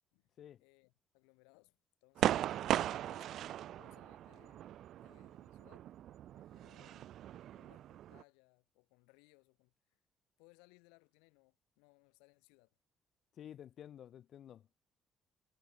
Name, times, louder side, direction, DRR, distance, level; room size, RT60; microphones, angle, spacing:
voice 1, 0.1-2.5 3.0-4.7 5.0-5.9 6.3-7.1 7.5-10.0 10.4-12.8, left 33 dB, 70° left, 3.6 m, -68 dB
sound 1, 2.2-8.2, right 12 dB, 55° right, 0.3 m, -38 dB
voice 2, 13.3-14.7, left 10 dB, 55° left, 2.2 m, -52 dB
figure-of-eight pair, 45°, 0 cm